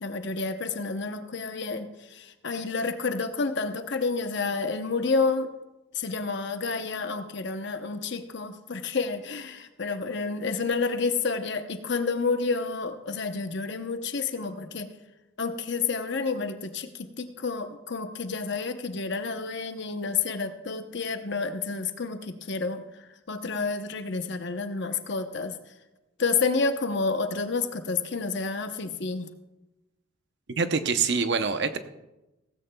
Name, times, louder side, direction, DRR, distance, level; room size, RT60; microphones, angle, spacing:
voice 1, 0.0-5.5 5.9-14.9 15.4-22.8 23.3-25.6 26.2-29.3, left 4 dB, 55° left, 8 dB, 0.8 m, -29 dB
voice 2, 30.6-31.8, right 5 dB, 55° right, 9 dB, 0.8 m, -25 dB
16.5 x 15.5 x 2.3 m, 1.0 s
head